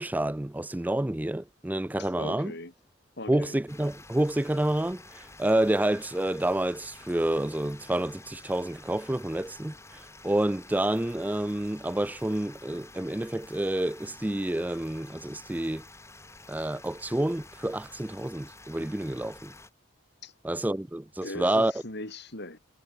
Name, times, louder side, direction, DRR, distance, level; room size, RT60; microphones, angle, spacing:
voice 1, 0.0-2.5 3.3-15.8 16.5-19.5 20.4-21.7, right 1 dB, 10° right, 0.4 m, -29 dB
voice 2, 2.0-2.7 3.2-3.6 20.2-20.3 21.2-22.6, left 2 dB, 55° left, 4.0 m, -39 dB
sound 1, 3.7-19.7, left 2 dB, 15° left, 3.6 m, -50 dB
head